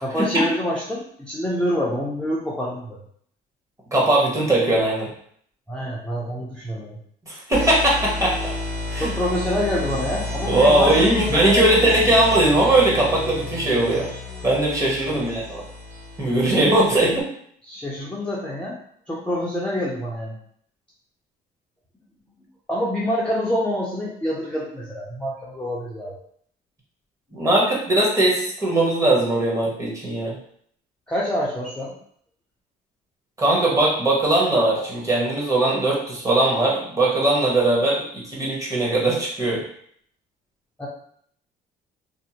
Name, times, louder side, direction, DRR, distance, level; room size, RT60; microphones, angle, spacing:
voice 1, 0.0-3.0 5.7-7.0 9.0-11.9 15.1-15.3 16.9-17.0 17.6-18.8 19.1-20.4 22.7-26.2 31.1-32.0 40.8-40.9, left 1 dB, 5° left, -6 dB, 0.5 m, -26 dB
voice 2, 3.9-5.1 7.3-8.5 8.9-9.1 10.5-14.1 14.4-15.6 16.2-17.2 27.3-30.3 33.4-39.6, right 1 dB, 20° right, -4 dB, 0.9 m, -20 dB
sound 1, 7.5-17.2, left 2 dB, 55° right, 1.3 m, -31 dB
2.6 x 2.0 x 2.8 m, 0.64 s
cardioid pair, 110°, 17 cm